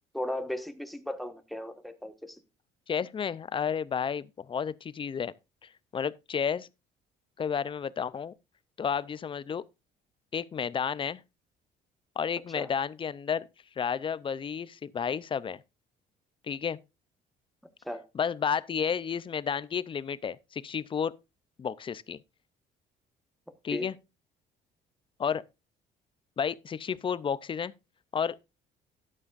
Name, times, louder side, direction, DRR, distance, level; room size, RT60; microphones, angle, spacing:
voice 1, 0.1-2.4 12.5-12.7 17.8-18.0 23.7-23.9, left 1 dB, ahead, 1.3 m, -36 dB
voice 2, 2.9-5.3 5.6-6.7 7.4-8.3 8.8-9.6 10.3-11.2 12.2-13.5 13.8-15.6 16.5-16.8 18.1-21.1 21.6-22.2 23.6-24.0 25.2-25.4 26.4-27.7 28.1-28.6, left 7 dB, 30° left, 0.5 m, -31 dB
12.5 x 9.8 x 2.5 m
cardioid pair, 110°, 17 cm